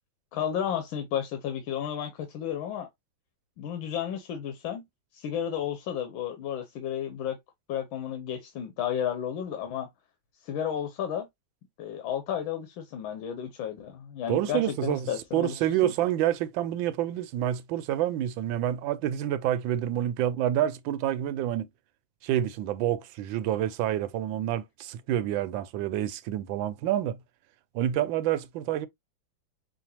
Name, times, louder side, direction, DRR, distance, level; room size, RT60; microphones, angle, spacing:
voice 1, 0.3-2.9 3.6-4.8 5.1-7.4 7.7-9.9 10.4-11.3 11.8-15.5 15.8-15.9, left 9 dB, 85° left, 1.5 m, -32 dB
voice 2, 14.3-21.7 22.2-27.2 27.7-28.9, right 12 dB, 80° right, 1.3 m, -28 dB
5.7 x 2.3 x 2.9 m
omnidirectional pair, 2.1 m